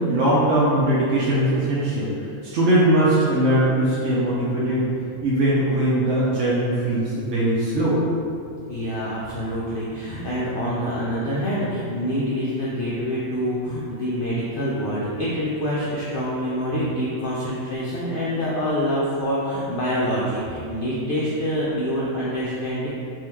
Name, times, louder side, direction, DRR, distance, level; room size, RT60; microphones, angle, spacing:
voice 1, 0.0-2.1 2.4-4.8 5.2-8.0, right 1 dB, 65° right, -8 dB, 0.8 m, -20 dB
voice 2, 8.7-22.9, equal, 90° left, -7 dB, 0.4 m, -26 dB
3.5 x 2.7 x 2.9 m, 2.5 s
omnidirectional pair, 1.5 m